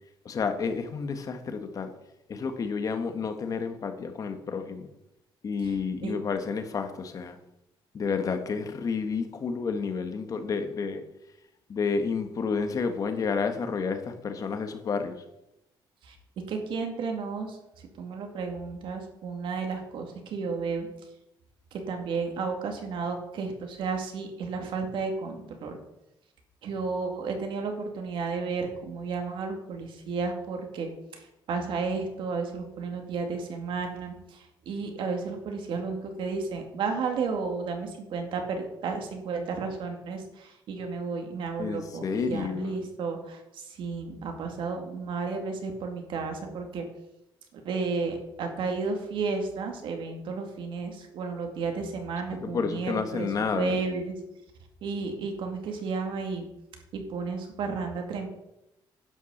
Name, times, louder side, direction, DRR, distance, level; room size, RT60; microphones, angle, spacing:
voice 1, 0.2-1.9 2.3-4.9 5.4-7.4 7.9-11.0 11.7-15.2 41.6-42.7 52.4-54.0, left 5 dB, 40° left, 8 dB, 1.4 m, -30 dB
voice 2, 16.5-20.9 21.7-25.8 26.6-46.8 47.5-54.1 54.8-56.5 56.9-58.3, right 4 dB, 70° right, 4 dB, 2.3 m, -33 dB
10.5 x 6.2 x 7.2 m, 0.89 s
cardioid pair, 135°, 9 cm